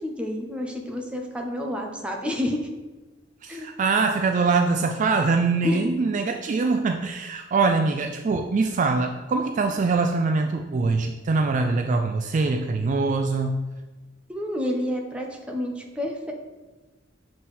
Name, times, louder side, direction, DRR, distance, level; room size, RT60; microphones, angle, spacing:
voice 1, 0.0-2.7 3.5-3.7 5.6-5.9 14.3-16.3, left 1 dB, 5° right, 1 dB, 0.8 m, -29 dB
voice 2, 3.4-13.6, right 4 dB, 40° right, 5 dB, 0.3 m, -23 dB
7.7 x 3.8 x 4.1 m, 1.2 s
head